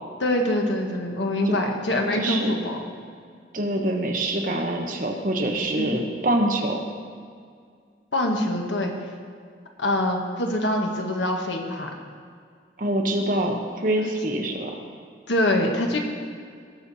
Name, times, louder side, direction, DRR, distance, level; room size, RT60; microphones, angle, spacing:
voice 1, 0.2-2.9 5.8-6.0 8.1-8.9 9.8-11.9 15.3-16.0, left 1 dB, 80° left, 2 dB, 1.5 m, -24 dB
voice 2, 2.1-2.5 3.5-6.8 12.8-14.7, right 1 dB, 45° right, 2 dB, 1.3 m, -25 dB
18.5 x 6.7 x 4.3 m, 2.1 s
head